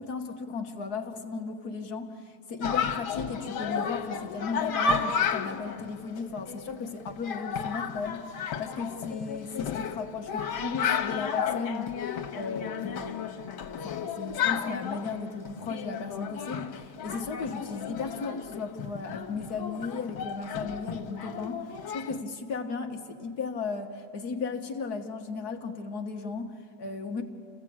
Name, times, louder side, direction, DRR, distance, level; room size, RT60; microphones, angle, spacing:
voice 1, 0.0-11.9 12.3-27.2, left 4 dB, 55° left, 4 dB, 1.7 m, -36 dB
Chatter, 2.6-22.2, left 6 dB, 80° left, 2.0 m, -33 dB
29.0 x 15.5 x 8.6 m, 2.4 s
omnidirectional pair, 2.2 m